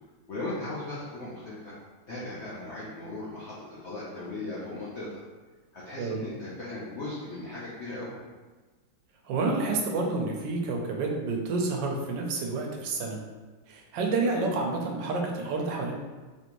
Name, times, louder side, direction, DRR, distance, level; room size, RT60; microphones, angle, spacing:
voice 1, 0.3-1.7 2.1-5.2 5.7-8.1, left 2 dB, 80° left, -7 dB, 0.6 m, -37 dB
voice 2, 9.2-13.2 13.7-15.9, right 3 dB, 75° right, 1 dB, 1.2 m, -29 dB
4.3 x 2.8 x 3.0 m, 1.3 s
omnidirectional pair, 2.2 m